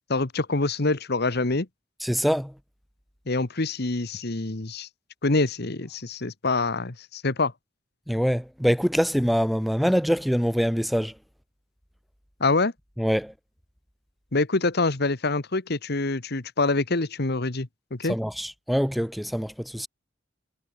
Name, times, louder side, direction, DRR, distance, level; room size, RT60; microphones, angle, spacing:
voice 1, 0.0-1.7 3.3-4.9 5.2-7.5 12.4-12.7 14.3-18.1, left 3 dB, 55° left, 1.4 m, -25 dB
voice 2, 2.0-2.5 8.1-11.1 13.0-13.3 18.1-19.9, equal, ahead, 2.1 m, -24 dB
head